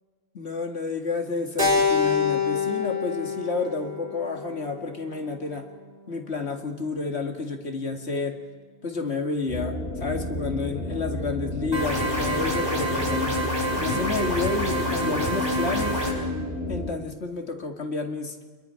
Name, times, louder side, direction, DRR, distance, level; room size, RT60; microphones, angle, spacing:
voice 1, 0.3-5.6 6.1-8.4 8.8-13.3 13.8-16.0 16.7-18.4, left 3 dB, 85° left, 4 dB, 2.3 m, -30 dB
Keyboard (musical), 1.6-6.0, left 5 dB, 45° right, 2.8 m, -27 dB
sound 1, 9.5-16.9, left 1 dB, 60° left, 2.4 m, -31 dB
sound 2, 11.7-16.1, equal, 25° right, 5.6 m, -27 dB
29.0 x 22.0 x 5.7 m, 1.4 s
omnidirectional pair, 1.1 m